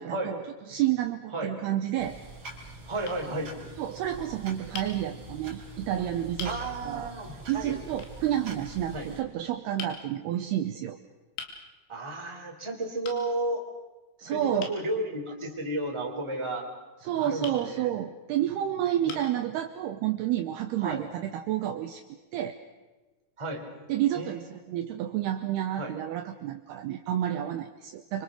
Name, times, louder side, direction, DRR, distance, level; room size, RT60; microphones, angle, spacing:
voice 1, 0.0-2.2 3.8-7.1 7.5-11.0 14.2-14.7 17.0-22.0 22.3-22.6 23.9-28.2, right 12 dB, 75° right, 7 dB, 2.6 m, -30 dB
sound 1, 2.0-9.2, right 2 dB, 30° right, 4.2 m, -44 dB
voice 2, 2.9-3.5 6.4-7.8 8.9-9.1 11.9-13.6 14.3-16.6 17.2-17.8 20.8-21.0 23.4-23.6 24.1-24.3 25.8-25.9, right 2 dB, 5° right, 1 dB, 2.8 m, -32 dB
sound 2, 3.0-3.2 4.7-4.9 5.8-5.9 6.4-6.6 8.0-8.2 9.8-10.0 11.4-11.6 13.0-13.2 14.6-14.8 17.4-17.6 18.5-18.6 19.1-19.4, left 6 dB, 80° left, 5.1 m, -40 dB
26.5 x 25.5 x 6.4 m, 1.2 s
omnidirectional pair, 5.5 m